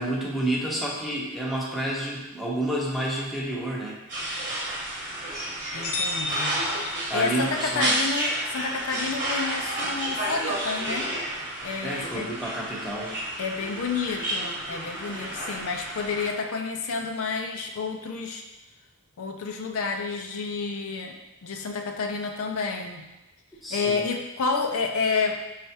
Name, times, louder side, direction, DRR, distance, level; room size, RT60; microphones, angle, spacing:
voice 1, 0.0-4.0 7.1-7.9 11.8-13.1 23.6-24.1, right 1 dB, ahead, -4 dB, 0.7 m, -29 dB
sound 1, 4.1-16.3, right 1 dB, 35° right, 1.0 m, -31 dB
voice 2, 5.7-11.1 11.6-12.3 13.4-18.4 19.2-23.0 23.7-25.4, left 4 dB, 65° left, 3 dB, 0.4 m, -30 dB
sound 2, 5.8-7.6, left 2 dB, 85° left, 0.8 m, -32 dB
5.5 x 3.3 x 2.8 m, 1.0 s
head